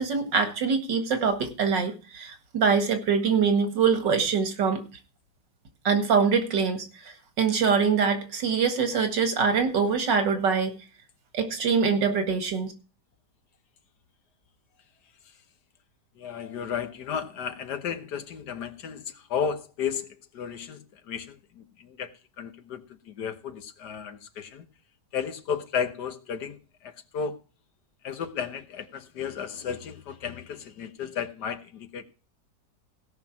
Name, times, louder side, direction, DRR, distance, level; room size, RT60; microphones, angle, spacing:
voice 1, 0.0-4.8 5.8-10.7 11.3-12.7, right 5 dB, 90° right, 2.5 m, -24 dB
voice 2, 16.2-24.6 25.1-27.4 28.0-32.0, left 7 dB, 70° left, 1.7 m, -34 dB
16.5 x 5.9 x 5.8 m
omnidirectional pair, 1.9 m